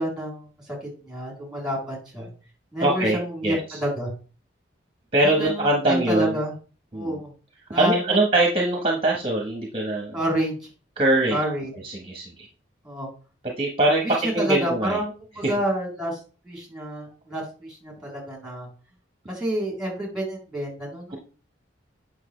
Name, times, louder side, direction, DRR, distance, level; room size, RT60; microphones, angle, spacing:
voice 1, 0.0-2.3 2.7-4.1 5.2-6.5 6.9-7.3 7.7-8.2 10.1-10.6 11.3-11.7 12.8-13.1 14.0-16.2 16.4-18.7 19.3-21.2, equal, 5° right, -2 dB, 3.3 m, -29 dB
voice 2, 2.8-3.2 3.4-3.8 5.1-6.4 6.9-7.2 7.7-10.2 11.0-11.4 11.8-12.5 13.6-15.0, right 1 dB, 30° right, 0 dB, 1.3 m, -22 dB
8.5 x 6.0 x 3.2 m, 0.36 s
head